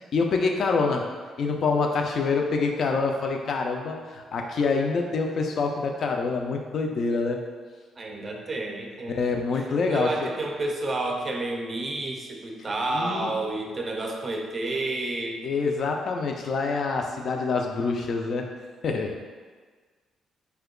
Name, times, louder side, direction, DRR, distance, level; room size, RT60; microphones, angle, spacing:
voice 1, 0.1-1.1 1.4-7.4 9.1-10.3 12.9-13.3 15.4-18.5 18.8-19.3, left 4 dB, 60° left, 2 dB, 0.4 m, -26 dB
voice 2, 8.0-15.4, right 2 dB, 35° right, 1 dB, 0.4 m, -30 dB
2.8 x 2.2 x 3.6 m, 1.5 s
cardioid pair, 90°, 0 cm